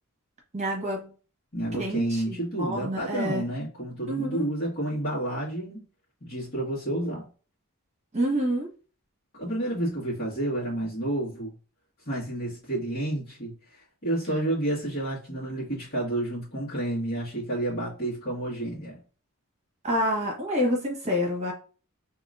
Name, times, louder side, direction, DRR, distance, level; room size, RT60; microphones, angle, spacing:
voice 1, 0.5-1.1 1.7-3.4 4.1-4.5 8.1-8.7 19.8-21.5, equal, 30° right, 1.4 m, -28 dB
voice 2, 1.5-5.8 6.2-7.3 9.3-11.5 12.0-19.0, right 1 dB, 45° left, 1.7 m, -30 dB
4.8 x 3.0 x 2.5 m
head